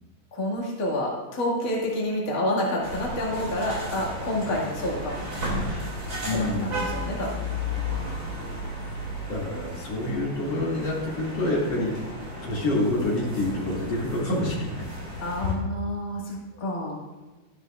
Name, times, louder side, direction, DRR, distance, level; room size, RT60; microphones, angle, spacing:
voice 1, 0.3-5.2 6.3-7.3 11.7-11.8 15.2-17.0, left 1 dB, 60° left, -5 dB, 0.8 m, -29 dB
sound 1, 2.8-15.5, left 1 dB, 25° right, 2.2 m, -34 dB
voice 2, 6.2-6.9 9.2-12.0 12.4-14.8 15.4-15.5, left 2 dB, 40° left, -5 dB, 2.8 m, -27 dB
13.0 x 12.5 x 2.5 m, 1.2 s
omnidirectional pair, 5.4 m